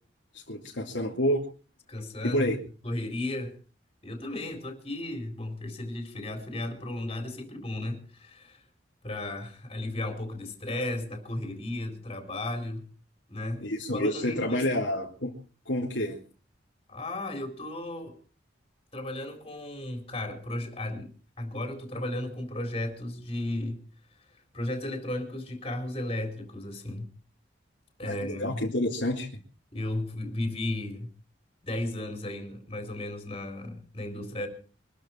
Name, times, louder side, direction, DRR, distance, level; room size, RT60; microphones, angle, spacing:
voice 1, 0.3-1.4 2.2-2.6 13.6-15.4 15.7-16.2 28.0-29.4, left 1 dB, 75° left, 2.7 m, -29 dB
voice 2, 1.9-2.5 2.8-3.6 4.0-8.6 9.0-12.9 13.3-13.6 13.9-14.7 16.9-18.2 18.9-21.1 21.4-23.8 24.5-27.1 28.0-28.6 29.7-31.1 31.6-34.5, left 1 dB, 30° left, 4.0 m, -34 dB
24.0 x 13.0 x 4.5 m
head